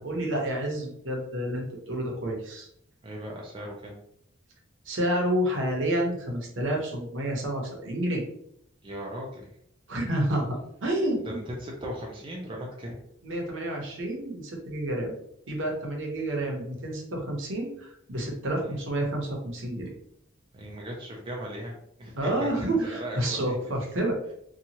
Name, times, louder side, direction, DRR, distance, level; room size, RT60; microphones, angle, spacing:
voice 1, 0.0-2.7 4.9-8.2 9.9-11.4 13.2-15.1 15.5-19.9 22.1-24.2, right 1 dB, 65° right, 0 dB, 0.8 m, -29 dB
voice 2, 3.0-4.0 8.8-9.5 11.2-13.0 18.6-18.8 20.5-23.7, equal, 25° right, -2 dB, 0.4 m, -38 dB
2.8 x 2.3 x 2.8 m, 0.72 s
head